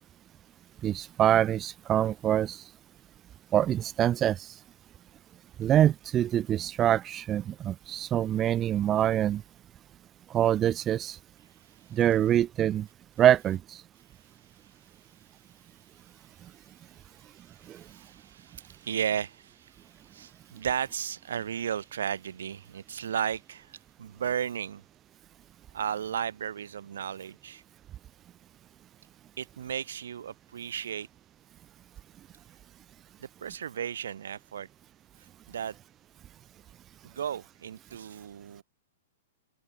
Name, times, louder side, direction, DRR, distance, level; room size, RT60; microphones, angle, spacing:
voice 1, 0.8-2.6 3.5-4.6 5.6-9.4 10.3-11.2 11.9-12.9 13.2-13.8 17.7-17.8, right 11 dB, 25° right, 0.7 m, -25 dB
voice 2, 17.2-24.8 25.7-27.6 29.4-31.1 33.2-34.7 35.5-35.8 37.0-38.6, right 8 dB, 80° right, 3.9 m, -35 dB
open air
hypercardioid pair, 130°, 0 cm